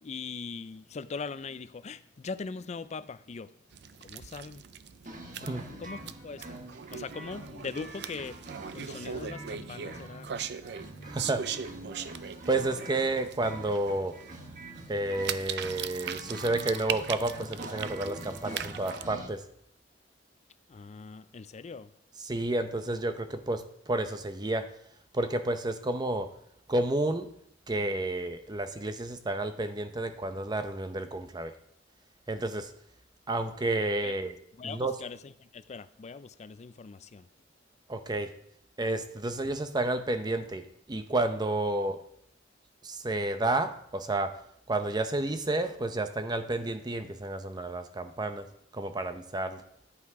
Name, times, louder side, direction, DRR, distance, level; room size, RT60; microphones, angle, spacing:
voice 1, 0.0-3.5 4.0-4.6 5.4-6.5 6.9-8.5 8.7-10.3 20.7-21.9 34.0-34.2 34.6-37.3, left 4 dB, 40° left, 14 dB, 0.4 m, -41 dB
sound 1, 3.7-19.0, right 8 dB, 65° right, 0.4 m, -40 dB
sound 2, 5.1-19.3, right 1 dB, 45° right, 1.2 m, -45 dB
voice 2, 11.0-11.5 12.5-14.2 14.9-19.4 22.2-24.7 25.1-26.3 26.7-27.3 27.7-31.5 32.3-32.7 33.3-34.3 34.6-34.9 37.9-38.3 38.8-42.0 42.8-44.3 44.7-48.5 48.7-49.6, right 2 dB, 25° right, 9 dB, 0.6 m, -31 dB
11.0 x 5.8 x 4.8 m, 0.71 s
head